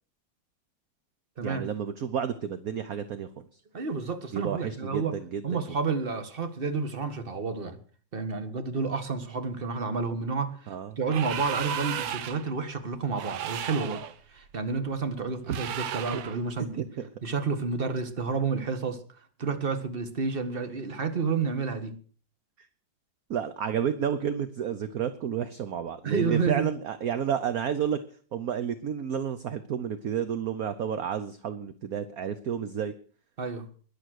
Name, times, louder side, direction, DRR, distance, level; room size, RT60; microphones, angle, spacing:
voice 1, 1.4-3.5 4.3-5.6 10.7-11.0 15.5-15.6 16.1-16.2 16.8-17.1 22.6-22.7 23.3-28.0 28.3-32.9, right 8 dB, 55° right, 12 dB, 1.3 m, -31 dB
voice 2, 3.7-5.1 5.4-7.8 8.1-14.0 14.3-16.8 17.2-19.0 19.4-21.9 26.0-26.7 33.4-33.7, right 4 dB, 30° right, 10 dB, 1.7 m, -30 dB
sound 1, 11.0-12.5 13.1-14.1 15.5-16.4, right 9 dB, 90° right, 1.7 m, -34 dB
21.0 x 7.8 x 6.5 m, 0.43 s
omnidirectional pair, 2.0 m